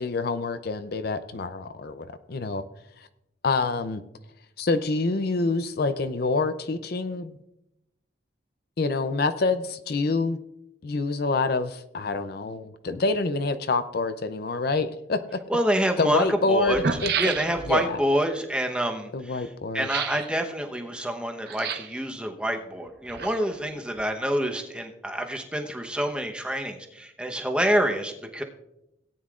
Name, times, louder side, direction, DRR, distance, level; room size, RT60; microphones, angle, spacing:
voice 1, 0.0-2.6 3.4-4.0 4.6-7.4 8.8-10.4 10.8-15.2 16.0-17.1 17.7-18.0 19.1-19.9, left 3 dB, 50° left, 10 dB, 0.5 m, -26 dB
sound 1, 15.3-15.4 16.3-16.4 16.6-17.8 19.8-20.3 21.5-22.0 22.8-23.6 23.9-24.0, right 6 dB, 55° right, 0.7 m, -30 dB
voice 2, 15.5-16.8 17.2-19.5 19.7-28.4, equal, 5° right, 3 dB, 0.9 m, -27 dB
17.5 x 9.5 x 2.4 m, 0.84 s
head